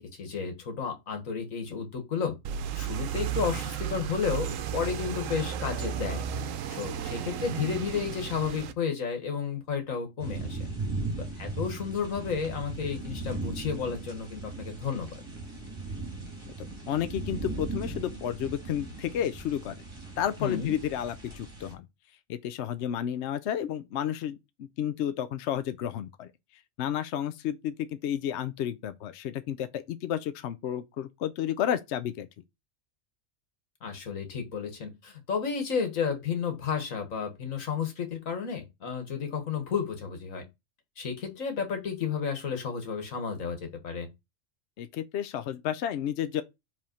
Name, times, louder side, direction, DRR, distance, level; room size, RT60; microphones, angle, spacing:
voice 1, 0.0-2.4 2.8-6.3 6.7-10.6 11.4-15.2 20.4-20.7 33.8-40.4 41.0-43.6 43.8-44.1, left 6 dB, 85° left, 1.8 m, -32 dB
sound 1, 2.4-8.7, right 9 dB, 75° right, 1.0 m, -34 dB
sound 2, 10.2-21.7, right 3 dB, 20° right, 1.7 m, -38 dB
voice 2, 16.6-19.8 20.2-21.9 22.3-32.3 44.8-46.4, left 10 dB, 65° left, 0.8 m, -32 dB
5.2 x 3.5 x 5.2 m
omnidirectional pair, 1.4 m